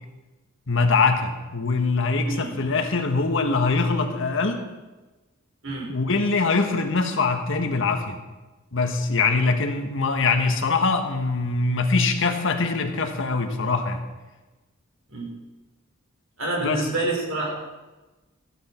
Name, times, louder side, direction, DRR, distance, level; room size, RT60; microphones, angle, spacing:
voice 1, 0.7-4.6 5.9-8.2 8.7-14.0 16.6-16.8, left 4 dB, 65° left, 5 dB, 1.5 m, -23 dB
voice 2, 2.2-2.5 5.6-5.9 15.1-15.3 16.4-17.5, right 2 dB, 75° right, -1 dB, 4.0 m, -27 dB
15.0 x 12.0 x 4.5 m, 1.2 s
head